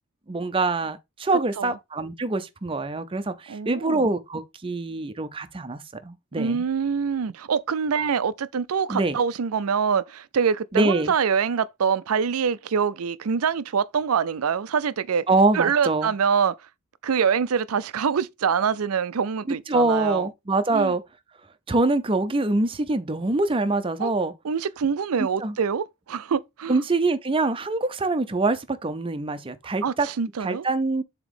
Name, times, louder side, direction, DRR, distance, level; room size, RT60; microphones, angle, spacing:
voice 1, 0.3-6.6 8.9-9.2 10.7-11.1 15.3-16.1 19.5-21.0 21.7-24.3 25.4-25.6 26.7-30.1 30.4-31.0, right 2 dB, 25° right, 0.5 m, -24 dB
voice 2, 3.5-4.0 6.4-15.2 15.5-16.6 17.0-20.3 20.7-20.9 24.0-24.1 24.4-26.8 29.8-30.7, right 6 dB, 85° right, 0.5 m, -25 dB
7.3 x 3.0 x 5.0 m
head